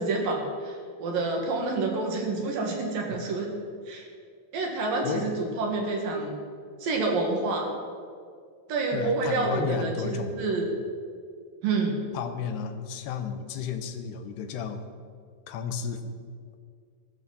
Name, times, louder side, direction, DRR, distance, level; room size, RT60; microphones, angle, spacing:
voice 1, 0.0-3.5 3.9-4.0 4.5-6.4 6.8-7.7 8.7-10.7 11.6-12.0, right 3 dB, 65° right, 1 dB, 3.6 m, -28 dB
voice 2, 8.9-10.4 12.1-14.8 15.5-16.2, left 6 dB, 90° left, 7 dB, 3.1 m, -33 dB
19.5 x 13.5 x 4.2 m, 2.2 s
omnidirectional pair, 4.6 m